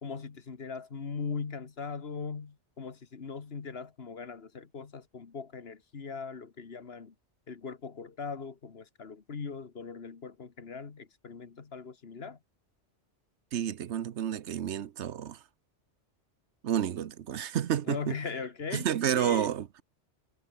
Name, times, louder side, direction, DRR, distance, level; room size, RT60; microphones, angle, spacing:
voice 1, 0.0-7.2 7.5-12.4 17.8-18.9 19.1-19.5, left 5 dB, 60° left, 1.7 m, -40 dB
voice 2, 13.5-15.4 16.6-18.2 18.7-19.8, right 9 dB, 75° right, 1.1 m, -30 dB
omnidirectional pair, 1.2 m